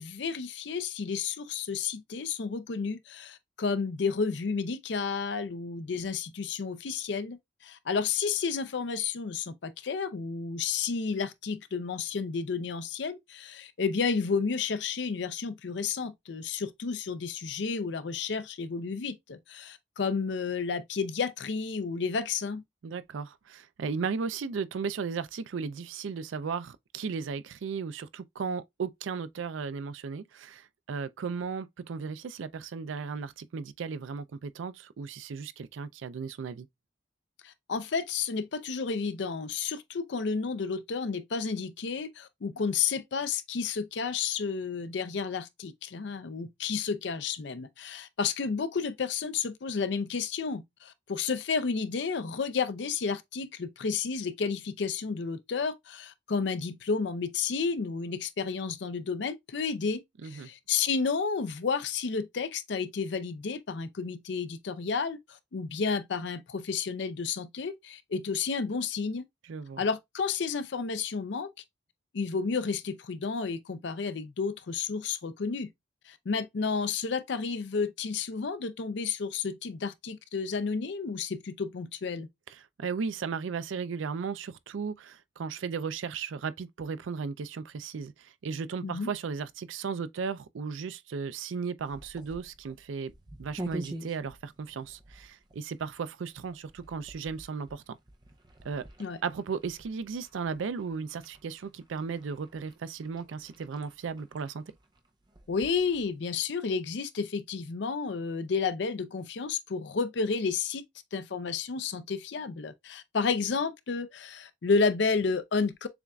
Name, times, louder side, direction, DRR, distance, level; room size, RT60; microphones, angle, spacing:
voice 1, 0.0-22.6 37.4-69.2 69.8-71.5 72.1-75.7 76.1-82.3 88.8-89.1 99.0-99.2 105.5-110.8 111.1-115.9, left 5 dB, 70° left, 0.5 m, -31 dB
voice 2, 22.8-36.7 60.2-60.5 69.5-69.8 82.8-93.1 93.4-98.0 98.6-98.8 99.2-104.6, right 5 dB, 90° right, 0.4 m, -35 dB
sound 1, 91.8-106.3, right 1 dB, 25° right, 0.5 m, -47 dB
6.9 x 2.4 x 2.2 m
head